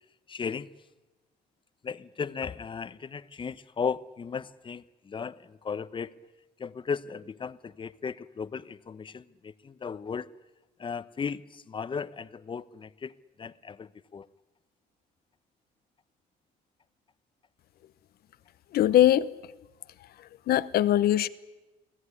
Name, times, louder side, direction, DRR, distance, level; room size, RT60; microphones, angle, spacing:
voice 1, 0.3-0.7 1.8-6.1 6.6-10.3 10.8-14.3, left 6 dB, 30° left, 15 dB, 1.0 m, -36 dB
voice 2, 18.7-19.3 20.5-21.3, left 12 dB, 65° left, 16 dB, 1.1 m, -21 dB
30.0 x 19.0 x 9.9 m, 1.1 s
cardioid pair, 110°, 17 cm